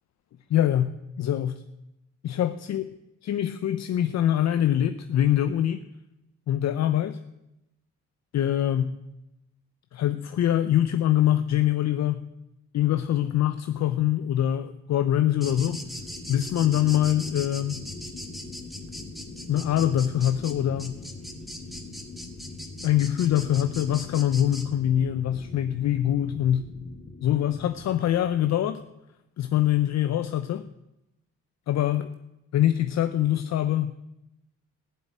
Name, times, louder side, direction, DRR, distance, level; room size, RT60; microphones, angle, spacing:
voice 1, 0.5-1.6 2.2-2.8 3.2-5.8 6.5-7.2 8.3-9.0 9.9-12.2 12.7-15.8 16.3-17.8 19.5-21.0 22.8-26.7 27.2-28.8 29.4-30.7 31.7-32.1 32.5-34.1, left 11 dB, 60° left, 10 dB, 0.7 m, -24 dB
sound 1, 15.4-28.7, left 3 dB, 40° left, 2.1 m, -43 dB
sound 2, 15.4-24.6, equal, ahead, 2.0 m, -40 dB
14.5 x 7.5 x 9.1 m, 0.91 s
cardioid pair, 90°, 30 cm